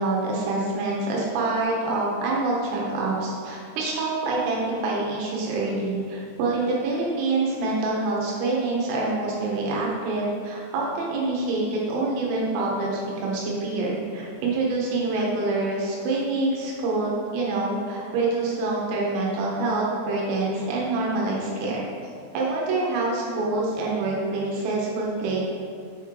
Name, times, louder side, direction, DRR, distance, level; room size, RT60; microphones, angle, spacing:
voice 1, 0.0-21.9 22.3-25.4, right 2 dB, 90° right, -3 dB, 3.9 m, -26 dB
7.7 x 4.7 x 3.7 m, 2.3 s
omnidirectional pair, 5.7 m